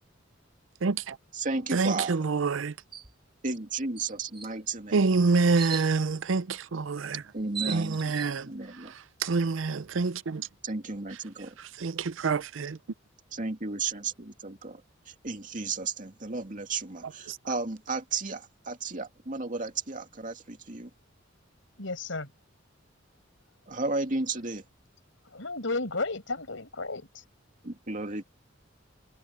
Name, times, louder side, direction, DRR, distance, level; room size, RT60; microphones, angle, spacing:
voice 1, 0.8-1.2 1.7-2.7 4.9-7.2 7.7-8.5 9.2-10.5 11.8-12.8 17.3-17.4, right 4 dB, 70° right, 0.6 m, -26 dB
voice 2, 1.3-2.3 3.4-5.0 7.3-8.0 8.4-8.9 10.6-11.6 13.3-14.8 15.1-20.9 23.7-24.6 27.6-28.2, right 3 dB, 45° right, 2.4 m, -33 dB
sound 1, 2.9-3.1 3.5-3.6 4.0-4.5 5.6-5.9 7.0-7.1 7.3-8.3, right 7 dB, 25° right, 3.5 m, -37 dB
voice 3, 21.8-22.3 25.3-27.2, left 3 dB, 75° left, 5.3 m, -33 dB
head